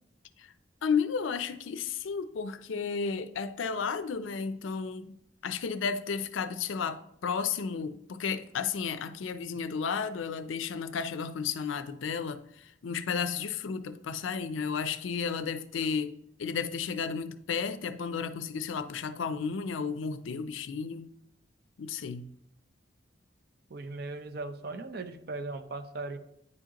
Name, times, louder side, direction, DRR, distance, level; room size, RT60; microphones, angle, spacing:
voice 1, 0.8-21.1 21.8-22.3, left 6 dB, 85° left, 0.5 m, -33 dB
voice 2, 23.7-26.2, right 3 dB, 55° right, 0.6 m, -38 dB
9.4 x 4.9 x 2.9 m
head